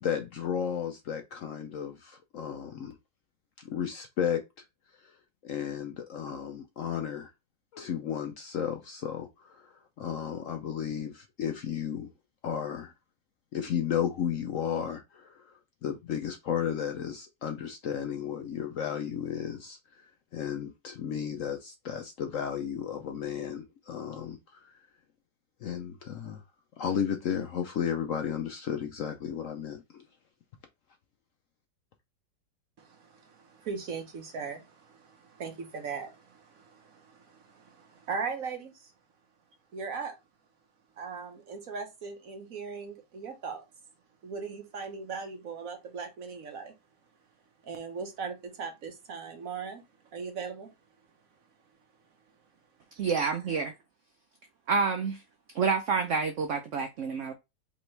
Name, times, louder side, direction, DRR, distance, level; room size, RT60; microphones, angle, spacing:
voice 1, 0.0-3.0 3.6-4.4 5.0-5.1 5.4-7.3 7.7-12.1 12.4-12.9 13.5-15.5 15.8-24.8 25.6-26.4 26.8-30.0, left 8 dB, 75° left, 0.7 m, -33 dB
voice 2, 32.8-38.9 39.7-40.1 41.0-43.6 44.2-46.7 47.6-49.8 50.1-50.7, right 5 dB, 55° right, 1.4 m, -39 dB
voice 3, 53.0-53.7 54.7-55.2 55.5-57.3, right 5 dB, 80° right, 0.6 m, -28 dB
5.2 x 3.0 x 3.2 m
omnidirectional pair, 2.0 m